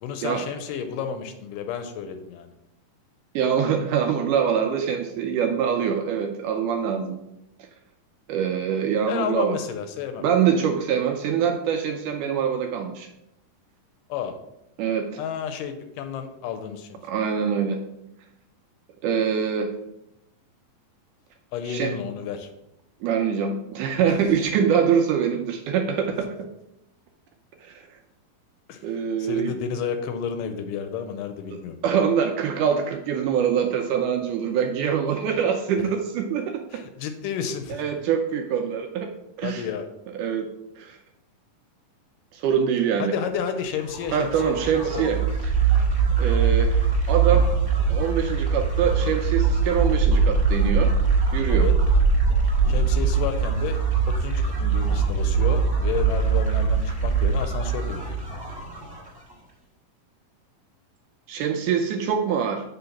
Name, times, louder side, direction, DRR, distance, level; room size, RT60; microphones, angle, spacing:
voice 1, 0.0-2.5 9.1-10.2 14.1-14.4 15.2-17.0 21.5-22.5 28.7-28.8 29.2-31.7 36.7-37.8 39.4-39.9 43.0-45.1 51.5-51.8 52.7-53.8 54.2-58.2, left 7 dB, 80° left, 8 dB, 2.1 m, -31 dB
voice 2, 3.4-7.2 8.3-9.6 10.2-13.1 14.8-15.1 17.1-17.8 19.0-19.7 21.7-21.9 23.0-26.3 27.6-27.8 28.8-29.5 31.5-36.6 37.7-39.1 39.4-39.6 40.2-40.5 40.8-41.0 42.3-43.2 44.1-45.2 46.2-47.5 47.9-50.9 51.3-51.7 61.3-62.6, right 7 dB, 80° right, 4 dB, 1.9 m, -24 dB
sound 1, 43.6-59.3, right 5 dB, 5° right, 1.8 m, -22 dB
6.9 x 3.8 x 5.8 m, 0.85 s
omnidirectional pair, 4.0 m